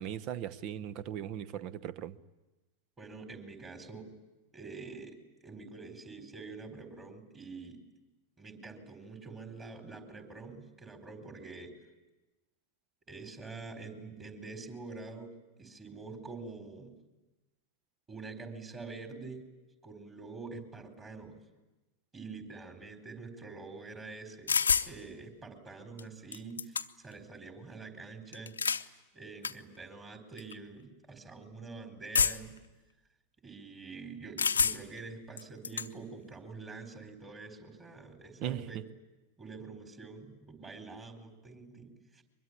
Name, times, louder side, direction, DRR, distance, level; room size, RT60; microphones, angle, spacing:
voice 1, 0.0-2.2 38.4-38.6, right 10 dB, 40° right, 18 dB, 0.9 m, -38 dB
voice 2, 3.0-4.1 4.5-5.2 5.4-7.8 8.4-11.7 13.1-17.0 18.1-19.4 19.8-21.4 22.1-28.5 29.1-32.6 33.4-38.8 39.4-42.2, right 4 dB, 20° right, 6 dB, 4.2 m, -46 dB
sound 1, 24.5-24.9 26.0-26.1 26.3-27.1 28.3-28.9 29.4-29.5 30.4-30.5 32.1-32.6 34.4-35.0 35.4-35.9, left 6 dB, 75° left, 0.8 m, -28 dB
23.5 x 22.0 x 9.9 m, 1.1 s
figure-of-eight pair, 90°, 0 cm